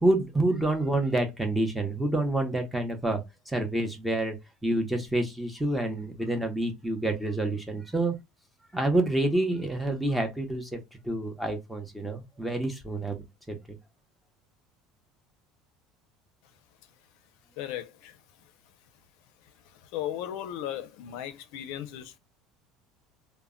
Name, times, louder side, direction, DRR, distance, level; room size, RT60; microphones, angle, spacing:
voice 1, 0.0-4.4 4.6-8.1 8.7-13.6, right 1 dB, 5° right, 0.7 m, -28 dB
voice 2, 17.6-18.2 19.9-22.2, left 11 dB, 70° left, 0.5 m, -36 dB
2.2 x 2.0 x 3.6 m
cardioid pair, 135°, 0 cm